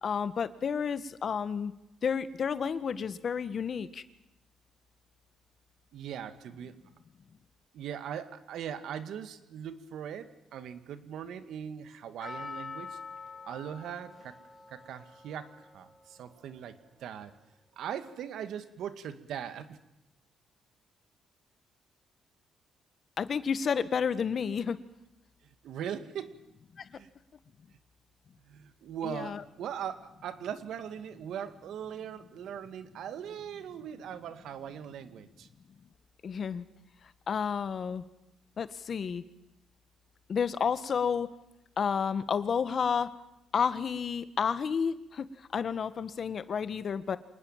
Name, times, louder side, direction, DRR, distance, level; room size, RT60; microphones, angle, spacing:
voice 1, 0.0-1.7 2.0-4.0 23.2-24.8 26.7-27.0 29.0-29.4 36.2-36.7 37.3-38.0 38.6-39.2 40.3-41.3 41.8-43.1 43.5-47.2, left 6 dB, 50° left, 13 dB, 1.5 m, -31 dB
voice 2, 5.9-6.8 7.7-13.0 13.4-14.4 14.7-17.3 17.8-19.8 25.6-26.3 26.9-27.1 28.4-35.5, right 9 dB, 75° right, 10 dB, 2.0 m, -40 dB
Percussion, 12.2-16.6 17.2-17.3, left 4 dB, 20° left, 4.5 m, -45 dB
26.5 x 20.0 x 7.4 m, 0.84 s
cardioid pair, 90°, 0 cm